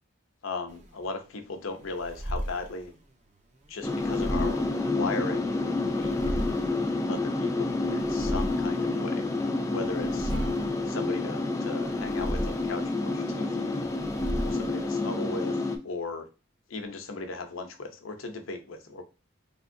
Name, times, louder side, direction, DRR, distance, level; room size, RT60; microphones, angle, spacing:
voice 1, 0.4-2.9 3.7-6.4 7.0-9.2 9.7-10.3 10.9-13.9 14.4-15.6 15.8-16.3 16.7-19.0, left 3 dB, 85° left, 6 dB, 0.6 m, -37 dB
sound 1, 0.7-15.2, equal, 35° right, 0.6 m, -37 dB
sound 2, 3.8-15.8, left 2 dB, 15° left, 0.3 m, -29 dB
Acoustic guitar / Strum, 10.3-13.4, right 3 dB, 70° right, 1.3 m, -49 dB
3.5 x 2.8 x 2.5 m, 0.30 s
head